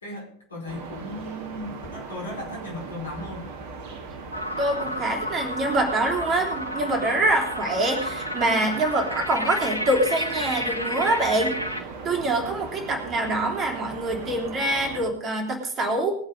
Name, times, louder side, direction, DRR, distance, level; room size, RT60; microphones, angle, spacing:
voice 1, 0.0-3.5, left 1 dB, 70° left, 0 dB, 4.9 m, -36 dB
sound 1, 0.7-15.1, right 4 dB, 45° right, 1.9 m, -38 dB
sound 2, 4.3-11.8, left 1 dB, 90° right, 1.2 m, -31 dB
voice 2, 4.6-11.6 12.0-16.1, right 2 dB, 25° right, 1 dB, 3.3 m, -25 dB
20.5 x 7.5 x 5.1 m, 0.63 s
figure-of-eight pair, 90°, 0 cm